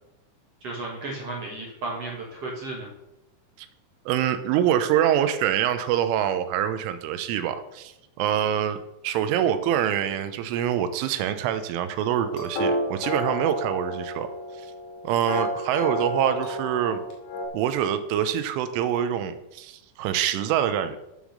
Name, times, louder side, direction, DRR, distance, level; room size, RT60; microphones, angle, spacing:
voice 1, 0.6-2.9, right 2 dB, 65° right, -2 dB, 1.5 m, -34 dB
voice 2, 4.1-7.9 8.2-8.8 9.0-14.3 15.0-17.0 17.5-21.0, right 10 dB, 85° right, 10 dB, 3.2 m, -25 dB
sound 1, 12.1-17.5, equal, 55° left, 3.7 m, -30 dB
9.1 x 6.9 x 6.4 m, 0.90 s
omnidirectional pair, 5.6 m